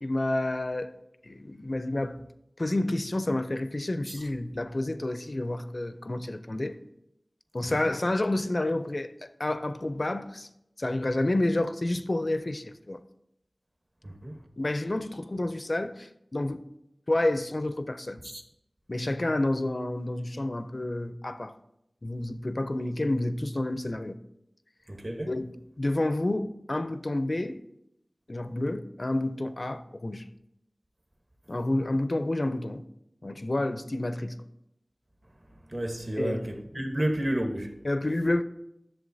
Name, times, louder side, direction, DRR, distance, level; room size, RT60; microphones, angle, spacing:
voice 1, 0.0-0.9 1.2-2.2 2.6-6.8 7.5-9.1 9.4-10.5 10.8-13.0 14.6-16.6 17.1-18.2 18.9-21.5 22.0-24.2 25.3-27.6 28.3-30.2 31.5-32.8 33.2-34.4 36.2-36.4 37.8-38.4, left 1 dB, 55° left, 0.5 m, -29 dB
voice 2, 24.9-25.3 35.7-37.7, right 1 dB, 40° right, 1.2 m, -30 dB
11.0 x 6.9 x 2.7 m
wide cardioid pair, 40°, 0 cm